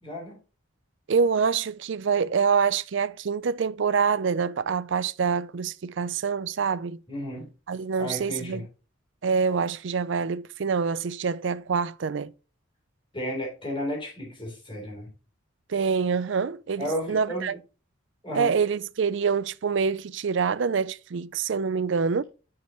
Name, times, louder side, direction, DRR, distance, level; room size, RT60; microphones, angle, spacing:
voice 1, 0.0-0.4 7.1-7.5 8.0-8.6 13.1-15.1 16.8-17.6 18.2-18.5, equal, 25° left, 3.7 m, -33 dB
voice 2, 1.1-7.0 7.7-8.7 9.2-12.3 15.7-17.6 18.3-22.2, right 5 dB, 65° right, 0.4 m, -26 dB
7.0 x 6.7 x 3.1 m
head